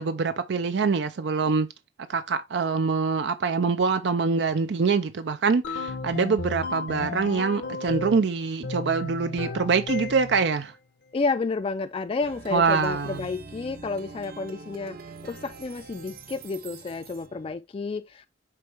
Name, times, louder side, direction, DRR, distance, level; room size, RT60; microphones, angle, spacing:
voice 1, 0.0-1.7 2.1-10.7 12.5-13.2, right 5 dB, 70° right, 0.5 m, -24 dB
sound 1, 5.6-8.3 8.6-10.5, left 3 dB, 70° left, 0.9 m, -33 dB
voice 2, 11.1-15.0 15.2-18.3, left 4 dB, 30° left, 0.3 m, -30 dB
Plucked string instrument, 12.2-17.5, right 4 dB, 55° right, 0.8 m, -44 dB
6.6 x 4.4 x 3.3 m
head